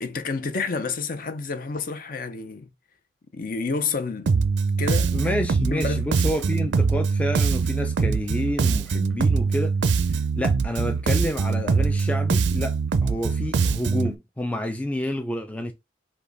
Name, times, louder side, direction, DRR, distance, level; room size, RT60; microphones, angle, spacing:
voice 1, 0.0-2.7 3.3-4.3 4.8-6.0, left 4 dB, 45° left, 0.6 m, -29 dB
Bass guitar, 4.3-14.1, right 5 dB, 65° right, 0.4 m, -23 dB
voice 2, 5.1-9.8 10.3-15.7, left 1 dB, 5° left, 0.3 m, -29 dB
5.2 x 2.2 x 3.9 m
head